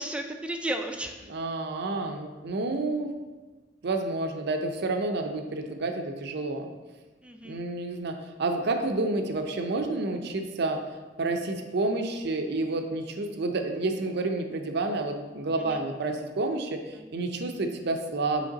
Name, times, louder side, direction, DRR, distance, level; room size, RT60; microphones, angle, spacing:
voice 1, 0.0-1.3 7.2-7.6 15.6-15.8 16.9-17.1, right 1 dB, 5° right, 5 dB, 0.3 m, -34 dB
voice 2, 1.3-3.1 3.8-6.7 7.4-10.8 11.2-18.5, right 2 dB, 60° right, 5 dB, 0.5 m, -29 dB
7.9 x 3.2 x 3.9 m, 1.3 s
head